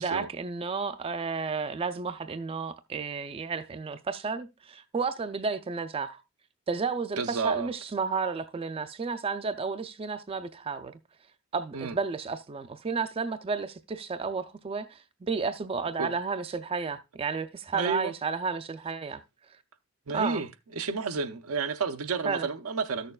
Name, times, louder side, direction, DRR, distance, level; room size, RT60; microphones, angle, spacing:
voice 1, 0.0-6.2 6.7-11.0 11.5-19.2 20.1-20.4 22.2-22.5, right 5 dB, 25° right, 0.4 m, -32 dB
voice 2, 7.2-7.7 11.7-11.9 16.0-16.1 17.7-18.1 20.1-20.5 20.8-23.1, right 5 dB, 80° right, 0.6 m, -31 dB
13.5 x 6.5 x 2.3 m
head